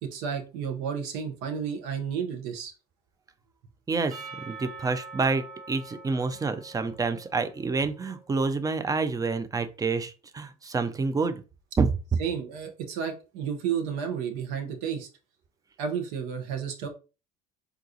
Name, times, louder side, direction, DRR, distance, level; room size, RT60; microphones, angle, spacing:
voice 1, 0.0-2.7 12.2-15.1 15.8-16.9, right 7 dB, 80° right, 0.7 m, -32 dB
voice 2, 3.9-11.4 11.8-11.9, right 4 dB, 20° right, 0.4 m, -28 dB
Percussion / Church bell, 4.1-8.4, right 4 dB, 45° right, 1.0 m, -45 dB
3.8 x 2.3 x 2.7 m
supercardioid pair, 75°, 19 cm